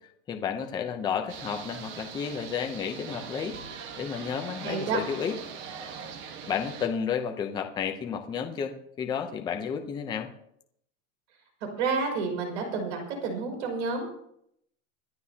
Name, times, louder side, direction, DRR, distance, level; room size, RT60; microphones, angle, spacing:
voice 1, 0.3-3.6 4.0-5.4 6.4-10.3, left 7 dB, 10° left, 5 dB, 0.7 m, -32 dB
sound 1, 1.3-6.9, right 6 dB, 30° right, 1.4 m, -41 dB
voice 2, 4.6-5.0 11.8-14.2, right 4 dB, 60° right, 2 dB, 5.9 m, -30 dB
26.0 x 11.5 x 2.9 m, 0.75 s
supercardioid pair, 170°, 40 cm